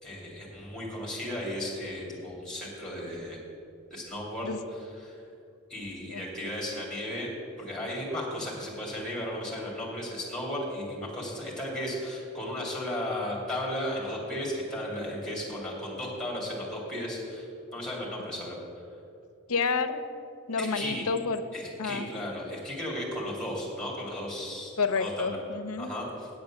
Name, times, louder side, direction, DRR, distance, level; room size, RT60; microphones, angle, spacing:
voice 1, 0.0-3.4 3.9-5.2 5.7-7.3 7.6-18.6 20.6-21.1 21.5-25.4 25.8-26.3, left 1 dB, 5° left, -3 dB, 2.6 m, -35 dB
voice 2, 19.5-20.0 20.5-21.4 21.8-22.1 24.8-25.9, left 4 dB, 85° left, 9 dB, 0.7 m, -29 dB
8.6 x 7.7 x 7.2 m, 2.6 s
head